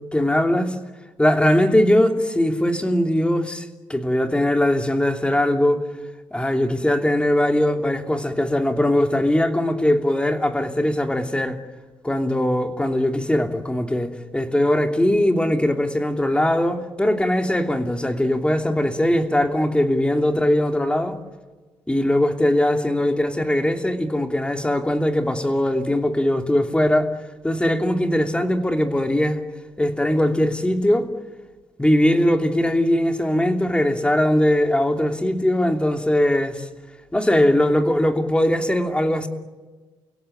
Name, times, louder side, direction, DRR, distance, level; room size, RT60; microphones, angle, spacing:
voice 1, 0.1-0.8 1.2-5.8 6.3-11.6 12.0-21.2 21.9-27.1 27.4-29.4 29.8-31.1 31.8-36.7 37.1-39.3, left 1 dB, 10° left, 2.9 m, -20 dB
29.5 x 17.0 x 9.2 m
cardioid pair, 95°, 11 cm